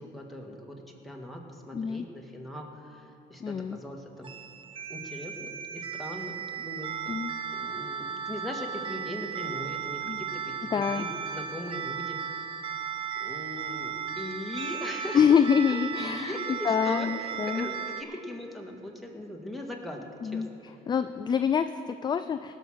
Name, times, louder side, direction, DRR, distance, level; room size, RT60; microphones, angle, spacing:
voice 1, 0.0-4.3 4.9-7.2 7.5-12.6 13.2-15.4 15.7-20.4, left 1 dB, ahead, -1 dB, 1.7 m, -40 dB
voice 2, 1.7-2.1 3.4-3.8 7.1-7.3 10.1-10.2 10.7-11.1 15.1-17.7 20.2-20.5 20.9-22.5, left 7 dB, 25° left, 10 dB, 0.3 m, -26 dB
sound 1, 4.2-18.0, right 7 dB, 30° right, 0.7 m, -36 dB
19.0 x 6.4 x 6.2 m, 2.7 s
cardioid pair, 110°, 17 cm